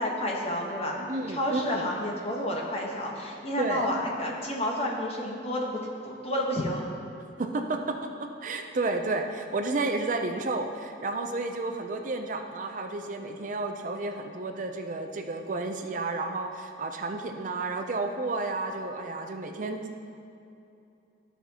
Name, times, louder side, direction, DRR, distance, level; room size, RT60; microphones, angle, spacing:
voice 1, 0.0-6.8, left 1 dB, 35° left, -1 dB, 1.1 m, -30 dB
voice 2, 1.1-1.9 3.6-3.9 7.4-8.0 8.4-19.9, right 3 dB, 45° right, 5 dB, 0.5 m, -31 dB
14.0 x 5.7 x 2.8 m, 2.7 s
head